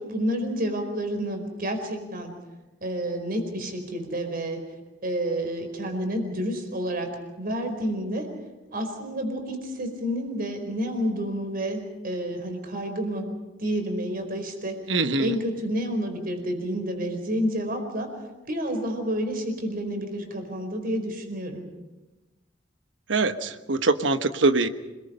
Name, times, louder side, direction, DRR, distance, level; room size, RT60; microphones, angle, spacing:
voice 1, 0.0-2.3 2.8-4.6 5.0-7.1 7.4-8.3 8.7-13.3 13.6-18.1 18.5-21.7, equal, 50° right, 6 dB, 4.6 m, -29 dB
voice 2, 14.9-15.3 23.1-24.7, right 3 dB, 90° right, 9 dB, 1.3 m, -23 dB
27.0 x 21.0 x 5.6 m, 1.1 s
head